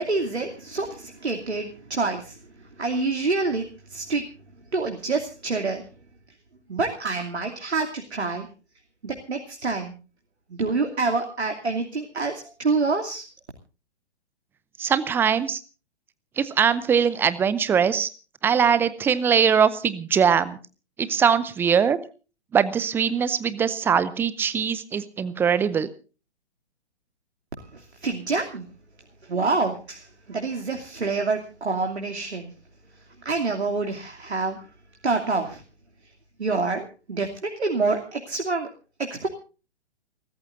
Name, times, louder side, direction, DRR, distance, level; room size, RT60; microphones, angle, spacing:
voice 1, 0.0-4.2 4.7-5.9 6.7-8.5 9.0-9.9 10.5-13.2 27.6-28.7 29.2-32.5 32.9-34.7 35.0-35.6 36.0-36.1 36.4-38.7 39.0-39.3, right 3 dB, 70° right, 3 dB, 2.9 m, -27 dB
voice 2, 14.8-15.6 16.4-18.1 18.4-20.6 21.0-22.0 22.5-25.9, right 7 dB, 5° right, 17 dB, 0.6 m, -21 dB
29.5 x 14.0 x 2.6 m, 0.35 s
figure-of-eight pair, 120°, 33 cm